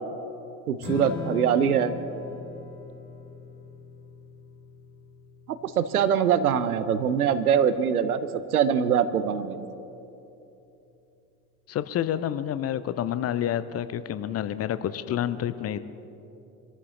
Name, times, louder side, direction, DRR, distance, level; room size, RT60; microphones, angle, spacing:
voice 1, 0.7-1.9 5.6-8.2 8.5-9.7, right 8 dB, 75° right, 12 dB, 0.8 m, -23 dB
Strum, 0.8-7.1, left 5 dB, 65° left, 3.1 m, -41 dB
voice 2, 11.7-15.8, left 10 dB, 35° left, 14 dB, 0.7 m, -29 dB
25.0 x 13.5 x 3.9 m, 2.9 s
figure-of-eight pair, 60°, 45 cm